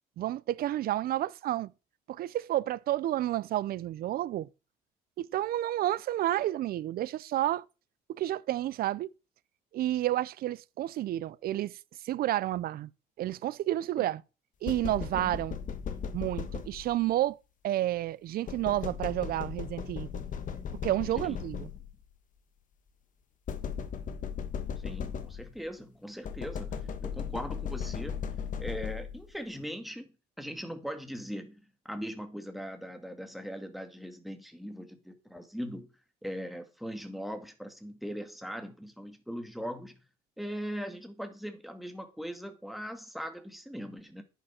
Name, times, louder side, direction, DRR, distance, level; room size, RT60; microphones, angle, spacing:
voice 1, 0.2-1.7 2.1-4.5 5.2-7.7 8.1-9.1 9.7-11.8 12.0-12.9 13.2-14.2 14.6-15.6 16.1-17.4 17.6-20.1 20.8-21.7, right 14 dB, 60° right, 0.6 m, -30 dB
sound 1, 14.7-17.1 18.5-22.0 23.5-25.7 26.2-29.3, left 7 dB, 50° left, 1.6 m, -37 dB
voice 2, 24.8-28.2 28.6-35.9 36.2-40.0 40.4-44.2, equal, ahead, 2.3 m, -40 dB
10.5 x 10.0 x 4.4 m
cardioid pair, 110°, 17 cm